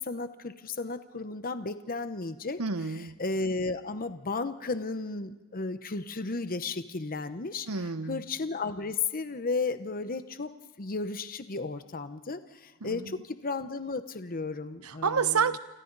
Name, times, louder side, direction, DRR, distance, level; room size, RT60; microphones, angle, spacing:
voice 1, 0.0-2.6 3.0-7.7 8.1-10.5 10.8-15.5, left 3 dB, 40° left, 10 dB, 0.9 m, -34 dB
voice 2, 2.6-3.1 7.7-8.2 12.8-13.2 14.8-15.6, right 5 dB, 85° right, 12 dB, 1.0 m, -29 dB
29.0 x 25.5 x 4.1 m, 1.1 s
head